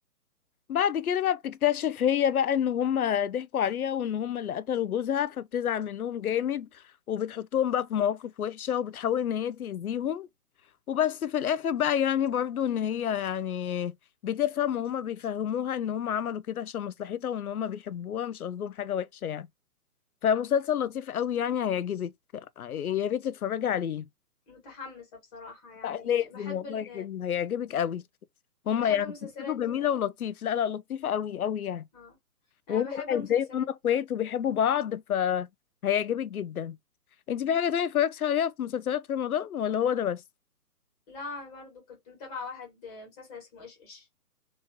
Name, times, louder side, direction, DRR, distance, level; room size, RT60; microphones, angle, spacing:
voice 1, 0.7-10.3 10.9-13.9 14.2-19.5 20.2-24.1 25.8-28.0 28.7-29.1 29.5-31.9 32.7-35.5 35.8-36.8 37.3-40.2, left 9 dB, 70° left, 0.5 m, -28 dB
voice 2, 24.5-27.1 28.7-29.9 31.9-32.2 32.7-33.7 41.1-44.1, left 4 dB, 25° left, 2.0 m, -43 dB
3.5 x 3.1 x 2.9 m
figure-of-eight pair, 140°, 46 cm